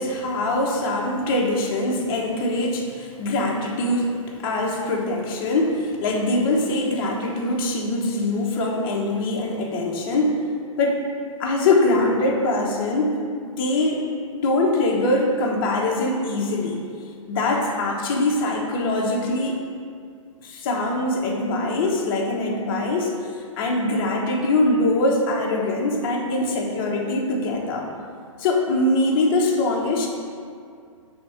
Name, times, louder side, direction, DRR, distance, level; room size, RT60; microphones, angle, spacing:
voice 1, 0.0-10.4 10.8-11.0 11.4-13.1 13.4-14.0 14.3-16.8 17.3-19.6 20.4-23.1 23.6-27.9 28.4-30.1, left 2 dB, 40° left, -1 dB, 1.1 m, -23 dB
5.1 x 3.6 x 5.7 m, 2.2 s
hypercardioid pair, 140°, 18 cm